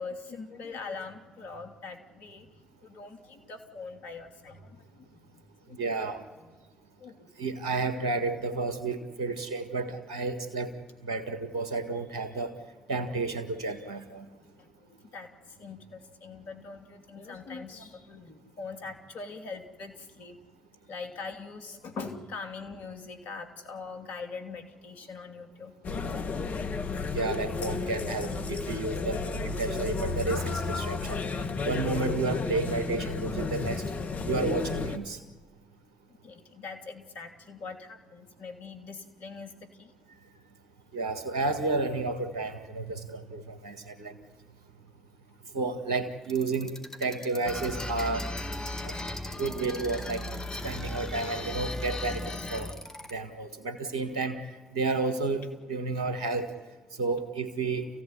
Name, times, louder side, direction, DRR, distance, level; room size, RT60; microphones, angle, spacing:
voice 1, 0.0-6.1 7.0-7.3 9.3-9.4 14.3-20.4 20.9-25.7 36.2-39.9, left 4 dB, 75° left, 5 dB, 2.8 m, -42 dB
voice 2, 5.8-6.2 7.4-10.7 11.0-12.5 12.9-14.3 27.1-31.2 31.6-33.8 34.2-35.2 40.9-44.2 45.5-46.7 47.0-48.3 48.8-48.9 49.4-50.3 50.6-52.7 53.1-54.4 54.7-56.5 57.0-57.9, right 3 dB, 90° right, 8 dB, 1.7 m, -31 dB
sound 1, 25.8-35.0, left 4 dB, 55° left, 1.7 m, -32 dB
sound 2, 46.2-53.1, left 1 dB, 20° left, 4.5 m, -44 dB
sound 3, 47.5-52.7, left 1 dB, 35° left, 3.3 m, -36 dB
29.0 x 16.0 x 9.8 m, 1.3 s
hypercardioid pair, 40°, 3 cm